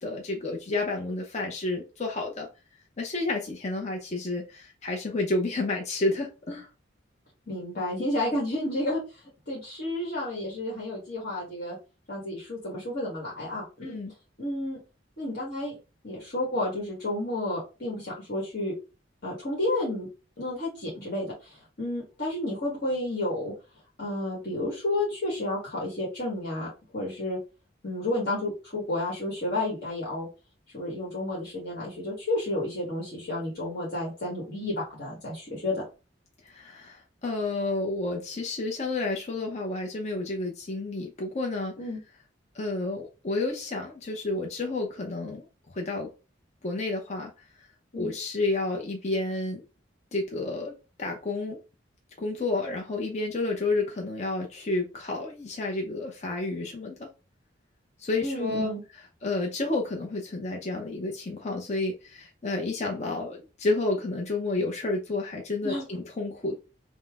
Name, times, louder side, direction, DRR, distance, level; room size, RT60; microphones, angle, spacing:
voice 1, 0.0-2.5 3.0-6.7 13.8-14.1 36.4-41.8 42.5-46.1 46.6-47.5 48.0-49.6 50.1-51.6 52.2-57.1 58.0-58.7 59.2-66.6, left 2 dB, 35° left, 1 dB, 0.6 m, -30 dB
voice 2, 7.5-11.8 12.1-14.0 14.4-14.8 15.2-15.8 16.0-18.7 19.2-20.1 20.4-23.5 24.0-27.4 27.8-30.3 30.7-35.8 41.8-42.0 47.9-48.1 58.2-58.8 65.6-65.8, left 1 dB, 55° left, -5 dB, 1.3 m, -31 dB
5.4 x 2.0 x 3.4 m, 0.31 s
head